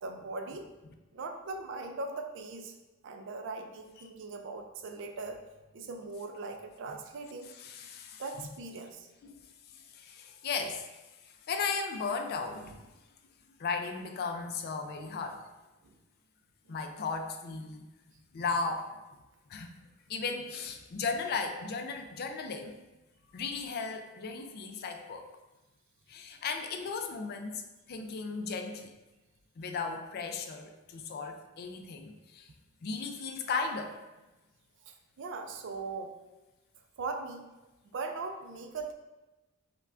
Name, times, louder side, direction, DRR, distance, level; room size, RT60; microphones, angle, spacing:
voice 1, 0.0-0.7 1.1-2.7 3.0-5.4 5.7-7.5 8.2-9.1 12.6-12.7 15.8-16.0 34.9-36.1 37.0-37.4 37.9-38.9, right 3 dB, 60° right, 5 dB, 0.4 m, -40 dB
voice 2, 7.5-8.2 9.2-9.3 9.7-10.9 11.2-12.7 13.6-15.4 16.7-17.8 18.3-18.9 19.5-19.7 20.1-22.8 23.3-25.3 26.1-28.9 29.6-32.5 32.8-34.0, left 4 dB, 50° left, 6 dB, 0.3 m, -36 dB
5.5 x 2.2 x 2.4 m, 1.1 s
head